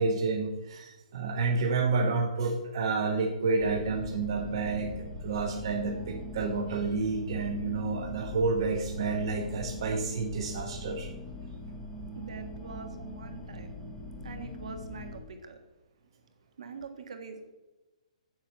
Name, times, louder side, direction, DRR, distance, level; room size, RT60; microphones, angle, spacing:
voice 1, 0.0-4.9 5.2-11.1, right 4 dB, 40° right, 2 dB, 1.0 m, -29 dB
sound 1, 3.6-15.2, left 1 dB, 5° left, 0.8 m, -41 dB
voice 2, 12.1-13.7 14.2-15.6 16.6-17.5, right 4 dB, 65° right, 6 dB, 1.6 m, -44 dB
7.5 x 6.3 x 7.0 m, 1.1 s
hypercardioid pair, 175°, 4 cm